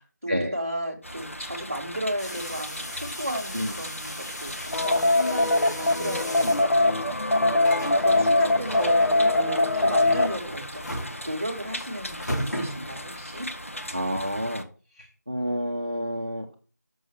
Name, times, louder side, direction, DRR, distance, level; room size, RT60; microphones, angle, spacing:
voice 1, 0.0-7.1 7.8-9.0 9.4-13.5, equal, 10° right, -6 dB, 1.1 m, -34 dB
sound 1, 1.0-14.6, left 1 dB, 50° left, 1.1 m, -38 dB
sound 2, 2.2-13.3, equal, 65° left, 3.3 m, -38 dB
sound 3, 4.7-10.4, left 2 dB, 90° left, 1.0 m, -22 dB
voice 2, 13.9-14.6 15.3-16.5, equal, 25° right, 1 dB, 0.7 m, -29 dB
6.9 x 6.2 x 6.8 m, 0.36 s
figure-of-eight pair, 180°, 9 cm